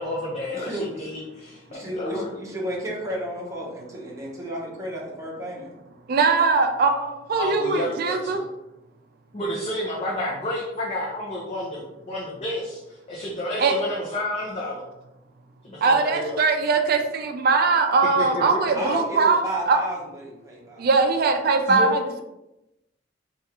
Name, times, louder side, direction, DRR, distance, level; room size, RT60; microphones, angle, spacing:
voice 1, 0.0-2.3 7.4-8.4 9.3-14.8 15.6-16.4 18.2-18.4 21.7-21.9, left 1 dB, 35° left, -5 dB, 0.6 m, -30 dB
voice 2, 0.5-0.9 1.7-5.7 18.7-20.8, right 1 dB, 15° right, -4 dB, 0.8 m, -32 dB
voice 3, 6.1-8.4 13.6-13.7 15.8-19.8 20.8-22.2, right 4 dB, 55° right, 5 dB, 0.4 m, -21 dB
3.4 x 2.4 x 2.8 m, 0.93 s
head